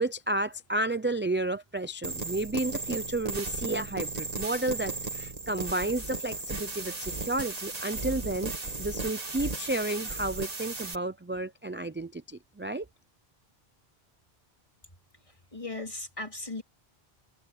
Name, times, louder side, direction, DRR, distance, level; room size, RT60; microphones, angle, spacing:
voice 1, 0.0-12.9, right 2 dB, 15° right, 0.4 m, -32 dB
sound 1, 2.0-10.9, right 3 dB, 40° right, 1.7 m, -35 dB
voice 2, 15.3-16.6, left 2 dB, 30° left, 3.4 m, -38 dB
open air
omnidirectional pair, 1.1 m